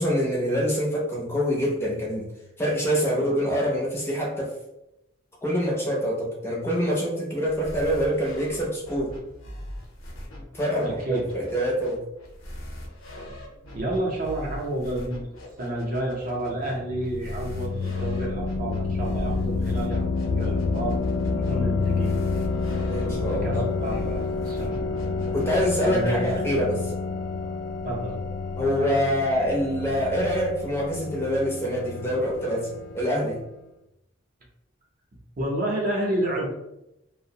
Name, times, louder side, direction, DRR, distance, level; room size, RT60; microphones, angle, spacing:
voice 1, 0.0-2.3 2.6-4.5 5.4-9.1 10.5-12.0 22.9-23.6 25.3-26.9 28.6-32.7 32.9-33.4, equal, 10° left, -3 dB, 0.5 m, -25 dB
sound 1, 7.5-26.7, left 1 dB, 85° left, 0.7 m, -41 dB
voice 2, 10.8-11.3 13.7-15.3 15.6-21.0 21.3-22.5 23.3-25.0 25.8-26.3 27.8-28.2 35.4-36.5, right 1 dB, 45° right, -2 dB, 0.6 m, -30 dB
sound 2, 16.5-33.2, left 4 dB, 70° left, 0.3 m, -29 dB
2.5 x 2.0 x 2.7 m, 0.88 s
head